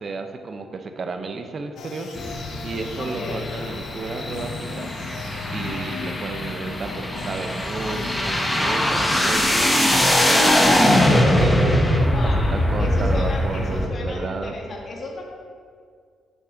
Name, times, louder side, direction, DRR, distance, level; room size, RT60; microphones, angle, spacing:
voice 1, 0.0-2.2 2.6-4.9 5.5-14.5, right 3 dB, 40° right, 6 dB, 0.6 m, -33 dB
sound 1, 1.8-10.6, left 6 dB, 65° left, 0.5 m, -38 dB
sound 2, 2.1-13.9, left 1 dB, 5° left, 0.8 m, -21 dB
voice 2, 3.0-3.4 12.1-15.2, left 2 dB, 40° left, -1 dB, 1.5 m, -34 dB
6.6 x 5.7 x 5.0 m, 2.1 s
cardioid pair, 135°, 0 cm